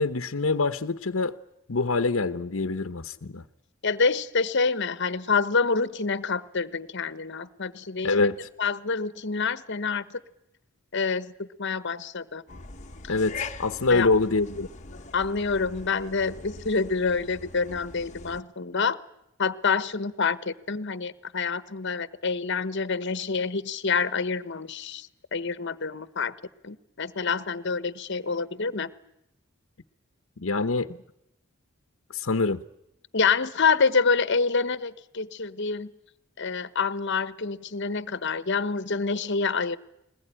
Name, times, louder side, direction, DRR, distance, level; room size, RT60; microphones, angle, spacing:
voice 1, 0.0-1.3 1.7-3.4 8.0-8.4 13.1-14.7 30.4-30.9 32.1-32.6, left 3 dB, 75° left, 9 dB, 0.9 m, -25 dB
voice 2, 3.8-8.3 8.6-10.2 10.9-12.4 13.0-13.2 13.9-14.1 15.1-19.0 19.4-26.3 26.6-28.9 33.1-35.9 36.4-39.8, left 4 dB, 60° left, 15 dB, 1.1 m, -27 dB
sound 1, 12.5-18.4, left 4 dB, 35° left, 1.3 m, -42 dB
21.5 x 20.0 x 10.0 m, 0.82 s
head